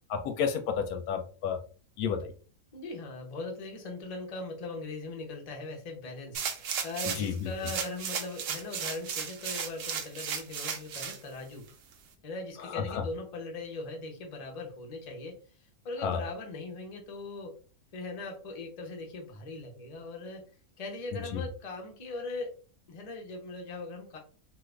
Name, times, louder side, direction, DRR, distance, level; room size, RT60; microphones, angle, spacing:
voice 1, 0.1-1.6 2.0-2.3 7.2-7.5 12.7-13.0 16.0-16.2 21.1-21.4, left 7 dB, 75° left, 6 dB, 1.0 m, -31 dB
voice 2, 2.7-11.7 12.2-15.4 15.8-17.6 17.9-20.4 20.8-22.5 22.9-24.2, left 2 dB, 40° left, 1 dB, 0.5 m, -40 dB
sound 1, 6.3-7.3 7.6-11.2 11.7-11.8, right 7 dB, 80° right, 1.1 m, -35 dB
2.8 x 2.4 x 3.2 m, 0.38 s
omnidirectional pair, 1.7 m